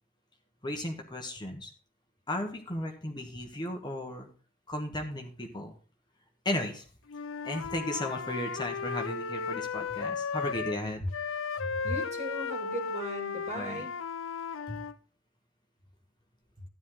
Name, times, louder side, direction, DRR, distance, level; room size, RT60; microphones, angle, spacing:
voice 1, 0.6-1.7 2.3-4.3 4.7-5.7 6.4-6.8 7.4-11.0 13.5-13.9 14.7-14.8, left 1 dB, 20° left, 2 dB, 1.3 m, -35 dB
Wind instrument woodwind instrument, 7.1-10.8 11.1-15.0, left 5 dB, 75° left, 0.6 m, -35 dB
voice 2, 11.6-13.9, equal, 35° right, 2 dB, 2.7 m, -38 dB
13.0 x 9.4 x 3.9 m, 0.40 s
head